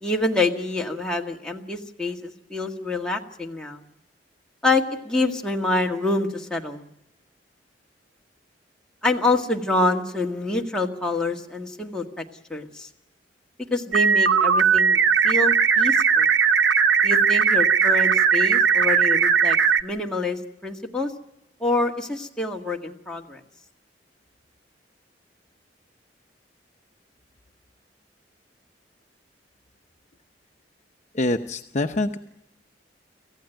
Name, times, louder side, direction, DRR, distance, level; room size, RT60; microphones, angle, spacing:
voice 1, 0.0-3.8 4.6-6.9 9.0-12.9 13.7-15.0 15.2-16.3 17.0-21.1 21.6-23.4, left 2 dB, 5° left, -1 dB, 1.9 m, -26 dB
sound 1, 13.9-19.8, right 6 dB, 80° right, 0.8 m, -18 dB
voice 2, 31.1-32.2, left 2 dB, 40° left, 5 dB, 0.8 m, -25 dB
26.5 x 15.5 x 9.2 m, 0.87 s
head